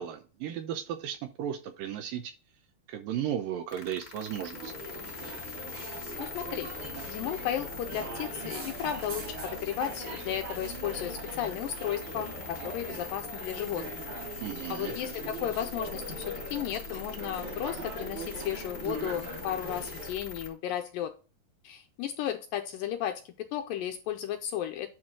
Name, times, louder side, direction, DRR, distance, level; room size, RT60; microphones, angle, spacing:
voice 1, 0.0-2.3 2.9-4.7 14.4-14.9, right 10 dB, 75° right, 2.1 m, -35 dB
sound 1, 3.7-20.5, left 6 dB, 45° left, 0.9 m, -43 dB
sound 2, 4.5-20.1, right 2 dB, 45° right, 4.9 m, -41 dB
voice 2, 6.2-6.7 7.1-13.8 14.7-21.1 21.6-24.9, left 10 dB, 80° left, 2.1 m, -34 dB
10.5 x 4.6 x 3.7 m
omnidirectional pair, 4.6 m